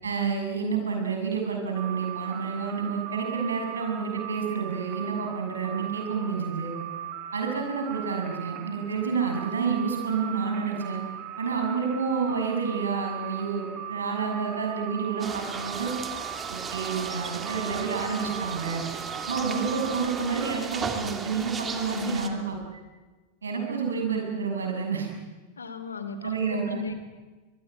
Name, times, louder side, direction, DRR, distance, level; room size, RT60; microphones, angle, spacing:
voice 1, 0.0-6.7 7.3-11.0 11.4-15.9 16.5-18.8 19.3-22.6 23.4-25.1 26.2-26.8, right 5 dB, 70° right, 3 dB, 6.9 m, -29 dB
sound 1, 1.7-20.5, right 10 dB, 35° right, 2.7 m, -38 dB
sound 2, 15.2-22.3, right 5 dB, 20° right, 2.9 m, -36 dB
voice 2, 21.9-22.4 25.6-26.4 26.7-26.9, left 3 dB, 75° left, 10 dB, 2.8 m, -35 dB
23.5 x 22.0 x 9.8 m, 1.3 s
figure-of-eight pair, 90°, 0 cm